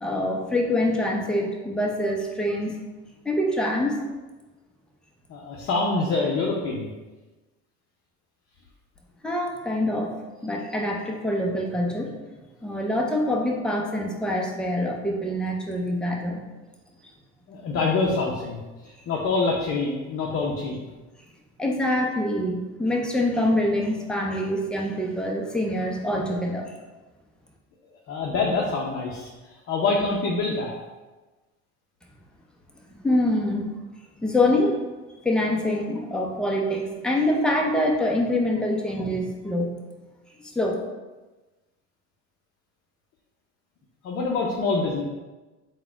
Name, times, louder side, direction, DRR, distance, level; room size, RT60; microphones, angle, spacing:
voice 1, 0.0-2.7 3.2-4.0 9.2-10.1 10.4-12.2 12.6-16.4 21.6-26.7 32.9-33.7 34.2-34.8 35.2-39.7 40.4-40.8, left 1 dB, ahead, -1 dB, 0.6 m, -25 dB
voice 2, 5.3-6.9 17.5-18.6 19.1-20.7 28.1-29.3 29.7-30.8 44.0-45.0, left 3 dB, 40° left, -2 dB, 0.7 m, -25 dB
4.0 x 2.3 x 4.5 m, 1.2 s
supercardioid pair, 100°, 35 cm